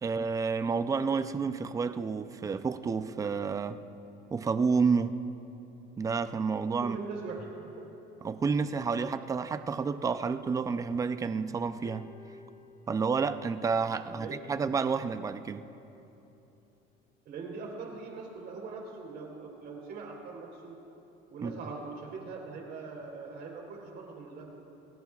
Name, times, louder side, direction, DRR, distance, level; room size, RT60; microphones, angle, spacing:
voice 1, 0.0-3.8 4.3-5.2 6.0-7.0 8.2-12.1 12.9-15.6 21.4-21.5, right 5 dB, 15° right, 11 dB, 0.4 m, -30 dB
voice 2, 6.8-7.9 14.2-14.6 17.3-20.8 21.3-24.5, right 4 dB, 55° right, 0 dB, 3.7 m, -41 dB
sound 1, 11.8-14.3 15.3-15.5, left 4 dB, 35° left, 1.6 m, -55 dB
28.0 x 18.5 x 2.4 m, 3.0 s
cardioid pair, 140°, 21 cm